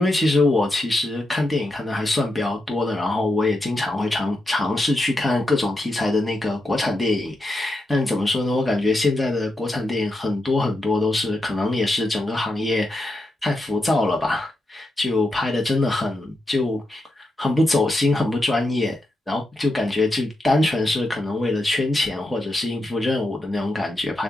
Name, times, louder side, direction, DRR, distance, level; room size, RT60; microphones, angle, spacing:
voice 1, 0.0-19.0 19.3-24.2, left 2 dB, 10° left, 1.5 m, -23 dB
6.4 x 2.5 x 3.1 m
cardioid pair, 90°, 0 cm